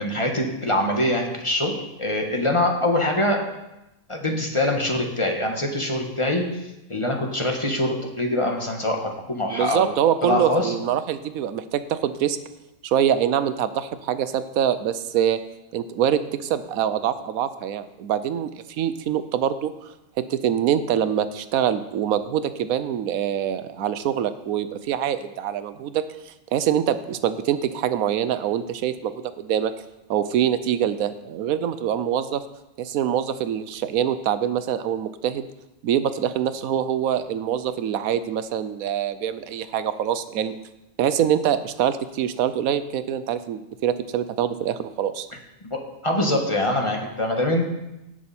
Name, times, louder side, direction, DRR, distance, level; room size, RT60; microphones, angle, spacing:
voice 1, 0.0-3.4 4.1-6.6 6.9-9.9 10.2-10.7 45.6-47.7, left 1 dB, 25° left, 2 dB, 1.3 m, -24 dB
voice 2, 9.5-12.4 12.8-15.4 15.7-19.9 20.3-29.7 30.1-32.4 32.8-35.5 35.8-40.6 41.0-45.3, right 9 dB, 85° right, 12 dB, 1.1 m, -24 dB
17.5 x 6.2 x 4.3 m, 0.94 s
omnidirectional pair, 1.4 m